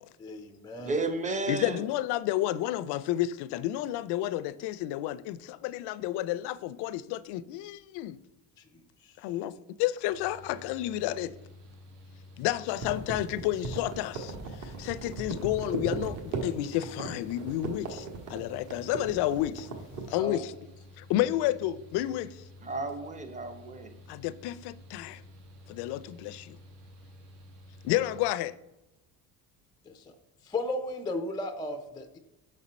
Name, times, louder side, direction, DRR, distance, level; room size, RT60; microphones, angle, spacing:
voice 1, 0.2-1.0 8.6-8.7 9.0-9.2 20.1-20.4 29.9-30.1 30.4-32.2, left 2 dB, 10° left, 0.3 m, -35 dB
voice 2, 0.8-1.8 22.6-23.9, right 3 dB, 20° right, 0.7 m, -32 dB
voice 3, 1.5-8.2 9.2-11.4 12.4-14.3 14.6-19.7 20.1-20.5 21.0-22.4 24.1-25.2 25.7-26.6 27.8-28.6, left 14 dB, 75° left, 0.5 m, -31 dB
Mechanical fan, 10.1-28.2, left 1 dB, 75° right, 1.7 m, -51 dB
sound 1, 12.7-20.1, right 4 dB, 50° right, 1.4 m, -37 dB
6.4 x 4.3 x 5.1 m
cardioid pair, 140°, 40 cm